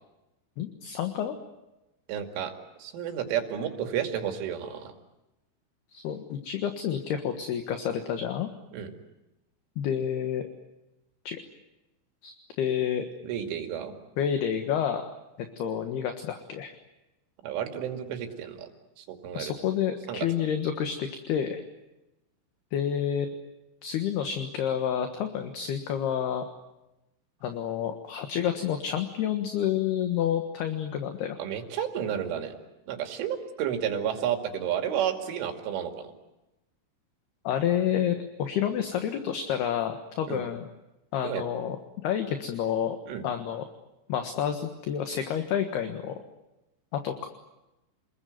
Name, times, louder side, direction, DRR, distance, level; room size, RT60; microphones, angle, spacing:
voice 1, 0.6-1.3 5.9-8.5 9.8-10.5 11.2-11.4 12.2-12.3 12.6-13.1 14.2-15.1 15.4-16.7 19.3-21.6 22.7-23.4 23.8-26.4 27.4-31.4 37.4-40.7 41.1-41.8 42.0-43.0 43.2-43.6 44.1-46.2 46.9-47.3, left 9 dB, 65° left, 6 dB, 3.2 m, -29 dB
voice 2, 2.1-2.5 2.8-4.9 8.7-8.9 13.2-13.9 17.4-18.7 19.0-19.5 20.1-20.3 31.4-32.5 32.9-36.1 40.3-40.5 41.2-41.4 43.1-43.2, right 9 dB, 85° right, 5 dB, 4.9 m, -31 dB
29.0 x 21.5 x 9.4 m, 0.96 s
omnidirectional pair, 5.5 m